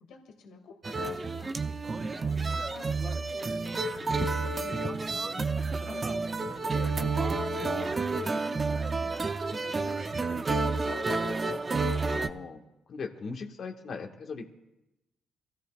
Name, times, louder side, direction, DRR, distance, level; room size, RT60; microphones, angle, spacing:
voice 1, 0.1-1.6 1.9-7.4 7.8-11.4, left 5 dB, 80° left, 2 dB, 2.6 m, -50 dB
sound 1, 0.8-12.3, right 3 dB, 30° right, 0.9 m, -30 dB
voice 2, 12.0-12.6 12.9-14.5, left 4 dB, 55° left, 3 dB, 1.9 m, -39 dB
25.5 x 16.5 x 2.6 m, 0.94 s
cardioid pair, 90°, 0 cm